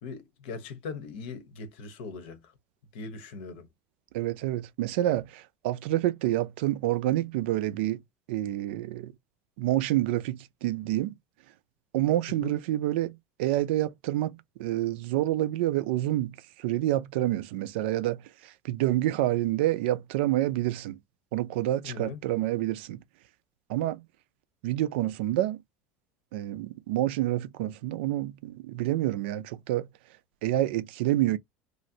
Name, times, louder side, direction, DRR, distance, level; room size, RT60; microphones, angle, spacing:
voice 1, 0.0-2.4 2.9-3.7 12.4-12.5 21.8-22.2, left 4 dB, 80° left, 0.8 m, -40 dB
voice 2, 4.1-8.0 8.3-9.1 9.6-11.1 11.9-21.0 21.3-23.0 23.7-24.0 24.6-25.6 26.3-29.9 30.4-31.4, right 14 dB, 90° right, 0.4 m, -28 dB
3.1 x 2.5 x 2.6 m
cardioid pair, 155°, 6 cm